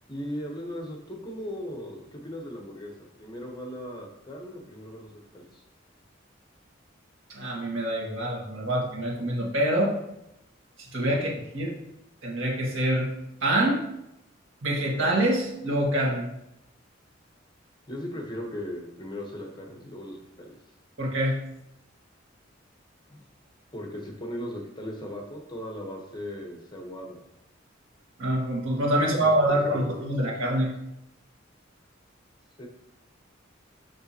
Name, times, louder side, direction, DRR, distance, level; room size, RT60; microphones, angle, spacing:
voice 1, 0.1-2.9 3.2-5.6 11.1-11.2 17.9-20.5 23.1-23.2 23.7-27.2 28.9-29.5 29.8-29.9 32.6-32.7, equal, 25° left, 1 dB, 1.1 m, -38 dB
voice 2, 7.3-9.9 10.8-11.3 11.5-11.7 12.2-13.1 13.4-13.8 14.6-16.3 21.0-21.4 28.2-30.7, right 1 dB, 85° right, -2 dB, 1.8 m, -25 dB
6.6 x 6.0 x 2.9 m, 0.84 s
head